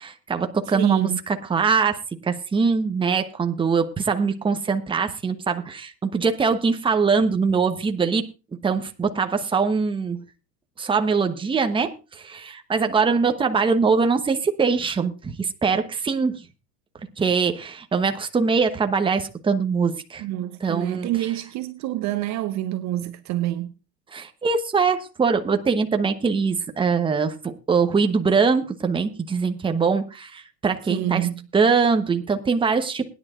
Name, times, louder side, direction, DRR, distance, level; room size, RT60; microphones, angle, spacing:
voice 1, 0.0-10.3 10.8-16.3 17.2-20.2 20.6-21.1 24.1-31.3 31.5-33.1, right 5 dB, 10° right, 1.0 m, -22 dB
voice 2, 0.7-1.2 20.2-23.7 30.9-31.5, right 14 dB, 35° right, 0.8 m, -27 dB
21.5 x 10.0 x 2.5 m
supercardioid pair, 120°, 48 cm